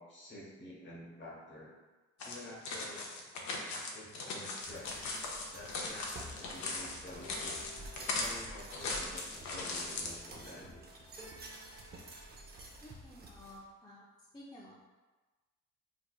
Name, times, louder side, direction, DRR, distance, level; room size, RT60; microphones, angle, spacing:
voice 1, 0.0-1.7 2.2-3.1 3.9-5.1 5.5-7.6 8.0-11.0, left 1 dB, 40° left, -4 dB, 1.0 m, -50 dB
sound 1, 2.2-10.2, left 3 dB, 65° left, 0.6 m, -39 dB
sound 2, 4.6-13.6, right 2 dB, 35° right, 0.6 m, -51 dB
sound 3, 7.1-12.9, left 2 dB, 15° right, 1.0 m, -58 dB
voice 2, 12.8-14.1 14.3-14.7, left 1 dB, 15° left, -5 dB, 0.4 m, -52 dB
3.2 x 3.0 x 2.3 m, 1.2 s
cardioid pair, 90°, 30 cm